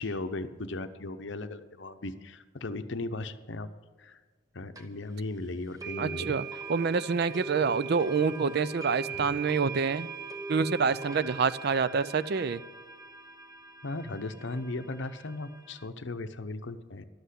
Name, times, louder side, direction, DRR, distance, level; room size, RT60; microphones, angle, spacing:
voice 1, 0.0-3.7 4.0-4.2 4.5-6.4 9.1-9.4 13.8-17.0, left 2 dB, 60° left, 10 dB, 0.8 m, -37 dB
sound 1, 4.8-4.9 5.8-15.9, right 5 dB, 15° right, 1.0 m, -41 dB
voice 2, 6.0-6.4 6.7-10.1 10.5-12.6, right 5 dB, 50° right, 16 dB, 0.4 m, -27 dB
12.5 x 8.0 x 8.3 m, 1.5 s
head